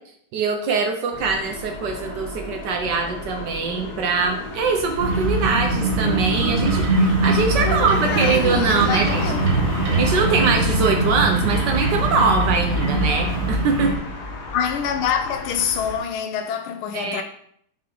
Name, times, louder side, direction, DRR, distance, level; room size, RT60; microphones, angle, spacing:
voice 1, 0.3-9.2 10.0-13.9 16.9-17.2, right 4 dB, 70° right, 1.1 m, -22 dB
sound 1, 1.1-16.0, left 3 dB, 55° left, 1.4 m, -31 dB
sound 2, 5.0-14.0, right 2 dB, 50° right, 0.9 m, -22 dB
voice 2, 7.6-9.5 14.5-17.2, left 8 dB, 80° left, 1.5 m, -26 dB
5.7 x 4.4 x 3.8 m
omnidirectional pair, 2.3 m